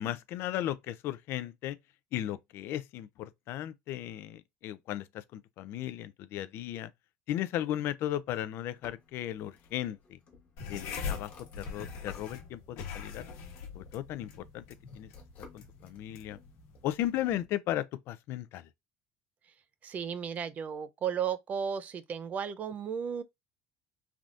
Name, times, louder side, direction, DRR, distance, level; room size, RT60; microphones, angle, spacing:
voice 1, 0.0-1.8 2.1-6.9 7.3-10.2 10.7-13.2 13.7-14.6 15.0-15.1 15.5-16.4 16.8-18.7, left 12 dB, 50° left, 0.4 m, -36 dB
sound 1, 8.7-12.7 13.0-17.1, left 4 dB, 35° left, 1.1 m, -55 dB
sound 2, 10.6-17.4, left 6 dB, 65° left, 1.0 m, -42 dB
voice 2, 19.8-23.2, right 7 dB, 30° right, 0.3 m, -34 dB
3.3 x 2.6 x 2.4 m
cardioid pair, 160°, 5 cm